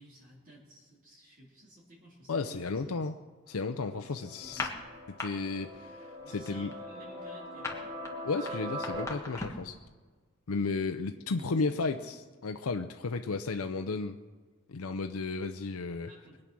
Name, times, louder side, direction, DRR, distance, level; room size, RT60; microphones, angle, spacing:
voice 1, 0.0-3.1 4.0-4.8 6.2-8.1 11.2-12.2 16.0-16.4, equal, 40° right, -3 dB, 3.5 m, -54 dB
voice 2, 2.3-3.1 3.5-4.7 5.2-6.7 8.2-9.8 10.5-14.2 14.7-16.1, left 4 dB, 85° left, 7 dB, 0.6 m, -33 dB
sound 1, 3.5-9.0, equal, 75° right, 5.4 m, -42 dB
sound 2, 4.4-5.3 5.6-5.9 6.2-9.7, left 3 dB, 15° left, 1.7 m, -38 dB
22.5 x 8.9 x 6.1 m, 1.4 s
head